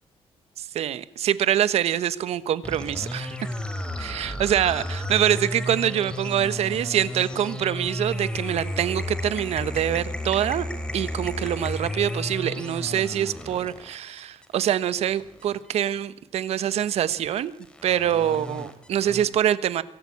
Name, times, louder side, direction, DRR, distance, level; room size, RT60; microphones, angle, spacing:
voice 1, 0.6-3.4 4.0-10.7 10.9-17.5 17.8-19.8, right 10 dB, 70° right, 15 dB, 1.2 m, -25 dB
sound 1, 2.6-15.7 16.6-19.2, left 1 dB, 10° left, 3.3 m, -33 dB
24.0 x 16.0 x 8.5 m, 0.90 s
cardioid pair, 135°, 11 cm